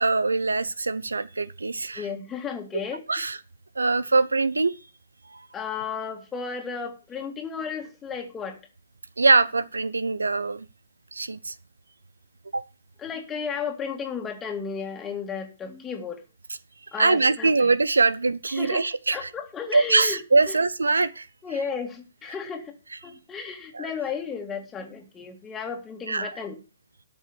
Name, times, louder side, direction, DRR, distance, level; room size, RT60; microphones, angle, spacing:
voice 1, 0.0-2.0 3.1-3.4 3.8-4.7 5.3-5.4 9.2-10.6 11.1-11.5 12.5-12.6 17.0-19.3 19.7-21.3 23.7-23.9 26.1-26.3, right 3 dB, 85° right, 0.6 m, -23 dB
voice 2, 1.9-3.3 5.5-8.6 13.0-16.2 16.9-17.7 18.5-20.2 20.5-20.6 21.4-22.7 23.0-26.6, left 6 dB, 15° left, 2.2 m, -34 dB
13.0 x 5.5 x 7.1 m
figure-of-eight pair, 125°, 0 cm